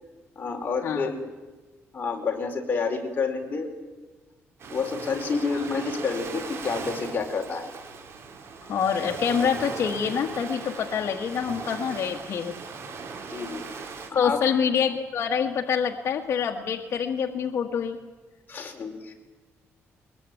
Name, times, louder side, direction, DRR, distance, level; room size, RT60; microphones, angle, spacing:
voice 1, 0.4-1.2 1.9-3.7 4.7-7.7 13.3-13.6 14.2-14.4 18.5-19.1, left 4 dB, 35° left, 2 dB, 4.8 m, -29 dB
Ocean, 4.6-14.1, right 5 dB, 60° right, 3.8 m, -39 dB
voice 2, 8.6-12.6 14.1-18.0, left 7 dB, 60° left, 1 dB, 1.6 m, -26 dB
22.0 x 21.5 x 9.3 m, 1.2 s
cardioid pair, 115°, 5 cm